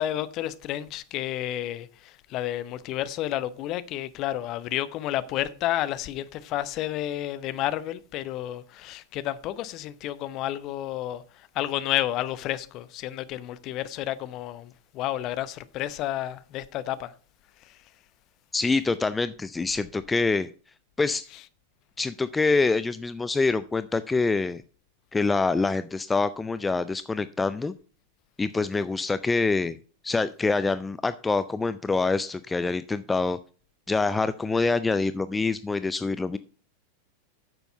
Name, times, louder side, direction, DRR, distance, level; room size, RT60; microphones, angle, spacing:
voice 1, 0.0-17.1 17.6-17.8, left 13 dB, 40° left, 0.8 m, -31 dB
voice 2, 18.5-20.5 21.0-21.2 22.0-24.6 25.1-27.7 28.4-29.8 30.0-33.4 33.9-36.4, left 3 dB, 10° left, 0.4 m, -25 dB
9.8 x 6.9 x 5.4 m
figure-of-eight pair, 90°, 0 cm